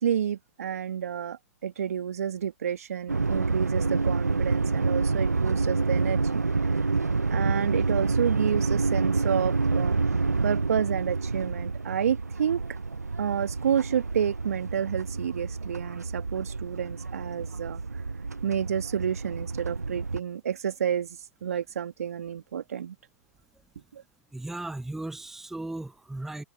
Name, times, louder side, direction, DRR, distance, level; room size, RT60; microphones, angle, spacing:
voice 1, 0.0-6.4 7.3-10.0 10.4-12.6 13.2-17.8 18.4-23.0 23.9-24.0, right 8 dB, 70° right, 2.0 m, -30 dB
sound 1, 3.1-20.2, right 3 dB, 90° right, 0.5 m, -28 dB
voice 2, 24.3-26.4, right 2 dB, 5° right, 0.7 m, -36 dB
figure-of-eight pair, 105°, 8 cm